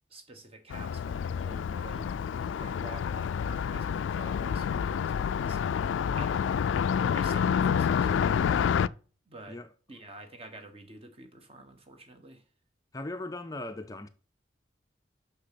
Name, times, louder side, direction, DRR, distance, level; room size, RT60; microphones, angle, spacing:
voice 1, 0.1-2.1 2.4-6.6 7.1-8.1 9.3-9.6 9.9-12.4, right 2 dB, 30° right, 1.2 m, -48 dB
Car passing by, 0.7-8.9, left 7 dB, 80° left, 0.3 m, -28 dB
voice 2, 12.9-14.1, left 2 dB, 20° left, 0.4 m, -38 dB
6.5 x 6.0 x 5.7 m
head